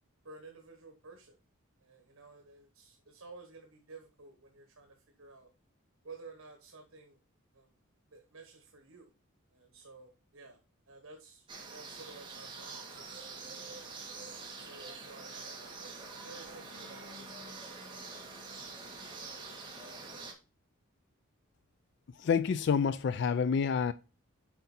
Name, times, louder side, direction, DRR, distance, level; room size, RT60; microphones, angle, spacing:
voice 1, 0.2-1.4 1.8-5.5 6.0-7.2 7.5-7.8 8.1-9.1 9.5-10.6 10.9-14.1 14.6-18.5, right 3 dB, 80° right, 1.3 m, -54 dB
sound 1, 11.5-20.3, right 4 dB, 20° right, 1.7 m, -45 dB
voice 2, 22.2-23.9, left 6 dB, 55° left, 0.3 m, -28 dB
7.9 x 4.6 x 4.2 m
head